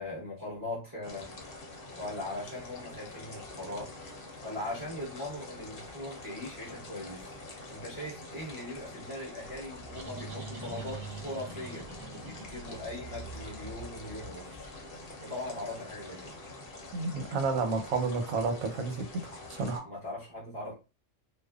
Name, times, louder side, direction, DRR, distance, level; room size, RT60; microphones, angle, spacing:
voice 1, 0.0-1.4 1.9-3.9 4.4-7.4 7.7-14.7 15.2-16.3 19.8-20.7, left 1 dB, 20° right, 0.8 m, -40 dB
sound 1, 1.0-19.8, left 2 dB, 55° left, 0.7 m, -46 dB
sound 2, 9.7-15.0, right 3 dB, 45° right, 0.5 m, -44 dB
voice 2, 16.9-19.9, right 4 dB, 85° right, 1.0 m, -31 dB
2.5 x 2.1 x 2.3 m
omnidirectional pair, 1.4 m